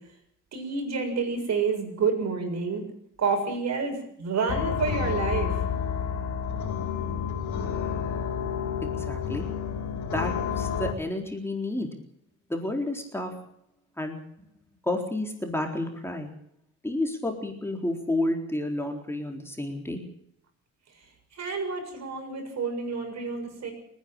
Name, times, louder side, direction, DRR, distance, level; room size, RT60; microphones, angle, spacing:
voice 1, 0.5-2.8 3.2-5.6 21.3-23.7, right 5 dB, 60° right, 4 dB, 7.0 m, -29 dB
sound 1, 4.5-10.9, left 7 dB, 70° left, 4.3 m, -30 dB
voice 2, 8.8-9.4 10.1-11.9 12.5-13.3 14.0-14.2 14.8-16.3 16.8-20.0, left 1 dB, 10° left, 2 dB, 3.9 m, -30 dB
28.0 x 10.5 x 9.0 m, 0.70 s
cardioid pair, 90°, 30 cm